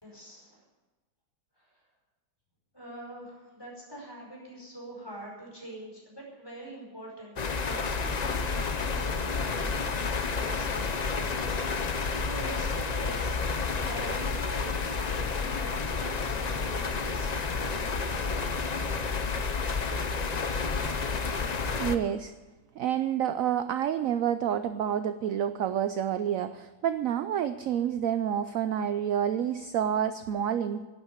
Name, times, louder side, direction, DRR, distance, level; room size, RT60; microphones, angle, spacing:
voice 1, 0.0-0.6 1.5-1.8 2.7-11.0 11.3-17.7, right 1 dB, 10° left, -3 dB, 5.1 m, -45 dB
sound 1, 7.4-22.0, left 4 dB, 55° left, 0.4 m, -30 dB
voice 2, 21.7-22.3 22.8-30.8, right 9 dB, 70° right, 11 dB, 0.8 m, -28 dB
11.5 x 9.9 x 9.5 m, 1.2 s
omnidirectional pair, 1.9 m